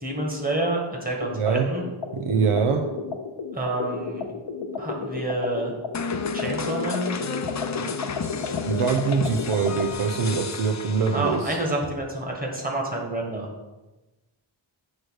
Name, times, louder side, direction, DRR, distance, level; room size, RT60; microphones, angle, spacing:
voice 1, 0.0-1.8 3.5-4.3 4.8-5.7 6.3-7.2 9.7-10.2 11.1-13.5, right 1 dB, 15° right, -1 dB, 1.6 m, -28 dB
sound 1, 1.2-9.9, left 5 dB, 70° left, 0.9 m, -33 dB
voice 2, 1.3-1.7 2.1-2.8 7.8-8.0 8.6-11.6, right 5 dB, 85° right, 4 dB, 0.7 m, -24 dB
sound 2, 5.9-11.6, left 5 dB, 35° left, 0.5 m, -32 dB
8.3 x 3.2 x 6.3 m, 1.1 s
wide cardioid pair, 105°, 50 cm